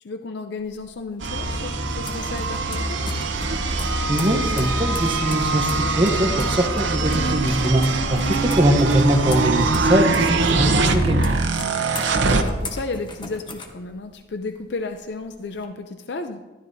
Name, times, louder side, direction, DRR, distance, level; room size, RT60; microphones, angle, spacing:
voice 1, 0.0-3.0 12.4-16.4, left 3 dB, 65° left, 7 dB, 0.5 m, -33 dB
sound 1, 0.6-14.4 14.8-15.6, left 2 dB, 25° left, 1.0 m, -39 dB
sound 2, 1.2-12.4, right 3 dB, 80° right, 0.8 m, -23 dB
Wind instrument woodwind instrument, 3.8-7.4, left 2 dB, 5° left, 0.5 m, -33 dB
voice 2, 4.1-7.8 8.1-11.3, right 1 dB, 30° right, 5 dB, 0.9 m, -22 dB
13.0 x 12.0 x 2.7 m, 1.3 s
head